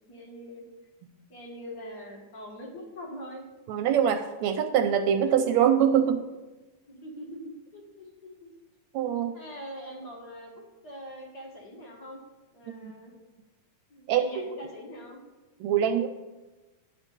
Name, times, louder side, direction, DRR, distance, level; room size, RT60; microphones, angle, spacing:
voice 1, 0.1-0.6 1.3-3.4 6.9-8.5 9.3-10.5 10.8-12.2 12.5-13.1 13.9-15.2, equal, 35° left, -1 dB, 2.1 m, -43 dB
voice 2, 3.7-6.2 8.9-9.3 12.8-12.9 14.1-14.2 15.6-16.1, right 9 dB, 80° right, 6 dB, 1.8 m, -23 dB
11.5 x 4.4 x 6.8 m, 1.1 s
omnidirectional pair, 3.4 m